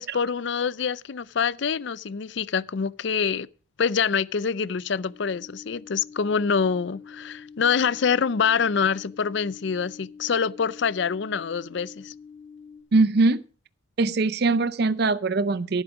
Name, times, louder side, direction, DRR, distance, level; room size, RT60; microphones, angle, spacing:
voice 1, 0.0-3.5 3.8-12.1, left 6 dB, 60° left, 0.5 m, -25 dB
sound 1, 4.8-12.8, left 5 dB, 25° left, 2.8 m, -46 dB
voice 2, 12.9-13.4 14.0-15.8, right 3 dB, 50° right, 0.5 m, -21 dB
14.5 x 8.1 x 5.1 m
head